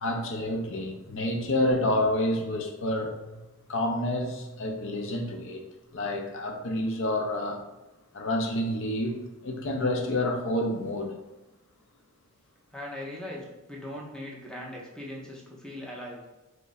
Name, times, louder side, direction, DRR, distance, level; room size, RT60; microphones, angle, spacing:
voice 1, 0.0-3.3 3.7-5.6 5.9-7.6 8.1-11.1, left 1 dB, 65° left, 3 dB, 0.5 m, -29 dB
voice 2, 12.7-16.2, left 1 dB, 5° left, -3 dB, 0.7 m, -40 dB
3.1 x 2.4 x 3.9 m, 1.0 s
head